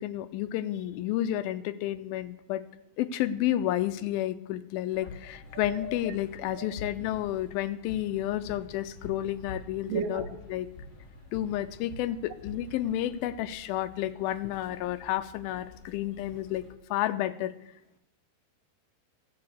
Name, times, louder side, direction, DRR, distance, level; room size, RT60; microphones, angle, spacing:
voice 1, 0.0-2.6 3.0-10.7 11.3-16.6 16.9-17.5, left 13 dB, 80° left, 12 dB, 2.2 m, -31 dB
sound 1, 4.9-16.7, left 2 dB, 40° left, 1.7 m, -47 dB
voice 2, 5.5-5.9 6.5-6.7 9.9-10.3, right 6 dB, 85° right, 7 dB, 1.4 m, -33 dB
15.5 x 6.8 x 7.9 m, 0.83 s
omnidirectional pair, 4.5 m